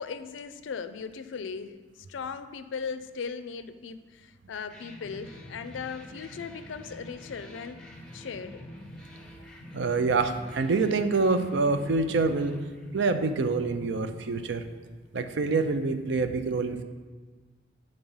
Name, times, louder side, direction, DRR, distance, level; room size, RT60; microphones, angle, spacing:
voice 1, 0.0-7.8 8.1-8.6, left 5 dB, 85° left, 11 dB, 0.4 m, -38 dB
sound 1, 4.7-15.2, left 1 dB, 5° left, 0.7 m, -47 dB
voice 2, 9.7-12.6 12.9-14.6 15.1-16.8, right 3 dB, 70° right, 9 dB, 0.5 m, -26 dB
7.1 x 3.9 x 5.4 m, 1.4 s
head